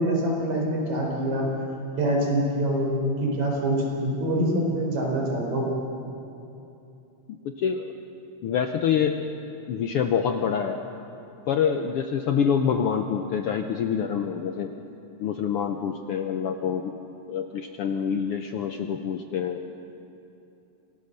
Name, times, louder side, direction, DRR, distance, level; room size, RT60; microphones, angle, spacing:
voice 1, 0.0-1.5 2.0-5.7, right 1 dB, 75° right, -1 dB, 5.6 m, -25 dB
voice 2, 7.4-7.9 8.4-9.2 9.7-10.8 11.5-14.7 15.2-16.9 17.3-19.6, left 7 dB, 70° left, 5 dB, 1.4 m, -26 dB
26.5 x 18.0 x 6.7 m, 2.8 s
omnidirectional pair, 3.4 m